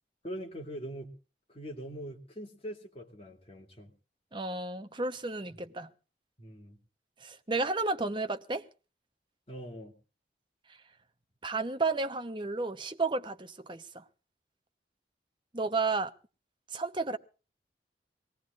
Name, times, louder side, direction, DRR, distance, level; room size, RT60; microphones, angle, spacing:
voice 1, 0.2-1.1 1.5-3.9 6.4-6.8 9.5-9.9, equal, 35° left, 2.7 m, -42 dB
voice 2, 4.3-5.9 7.2-8.6 11.4-14.0 15.5-16.1 16.7-17.2, right 3 dB, 25° right, 1.0 m, -32 dB
23.5 x 18.0 x 2.5 m
head